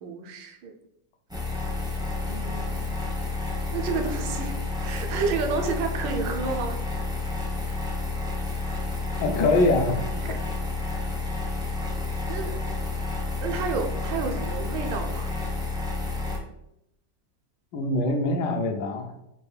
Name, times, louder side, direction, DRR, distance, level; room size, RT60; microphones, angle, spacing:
voice 1, 0.0-0.7 2.3-2.8 3.7-4.6 4.8-6.8 10.2-10.4 11.6-11.8 12.3-12.6 13.4-15.3, right 5 dB, 80° right, 4 dB, 1.3 m, -30 dB
sound 1, 1.3-16.4, left 3 dB, 5° right, 0.3 m, -30 dB
voice 2, 9.2-10.1 17.7-19.1, left 2 dB, 80° left, 4 dB, 1.2 m, -23 dB
5.4 x 2.3 x 3.2 m, 0.84 s
omnidirectional pair, 2.0 m